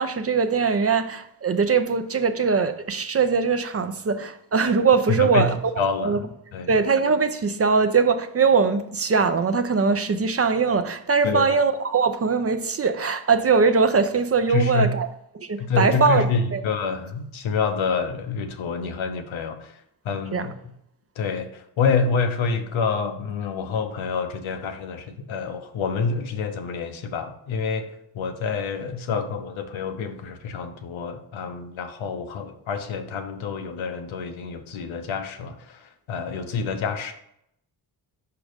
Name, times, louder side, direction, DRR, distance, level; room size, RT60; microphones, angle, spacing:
voice 1, 0.0-5.5 6.0-6.2 6.7-15.1 15.4-16.6 20.3-20.5, right 5 dB, 30° right, 0.5 m, -21 dB
voice 2, 5.1-6.3 6.5-6.8 11.2-11.5 14.5-14.9 15.6-20.7 21.2-37.1, left 5 dB, 90° left, 0.9 m, -27 dB
5.3 x 4.7 x 5.0 m
cardioid pair, 80°, 46 cm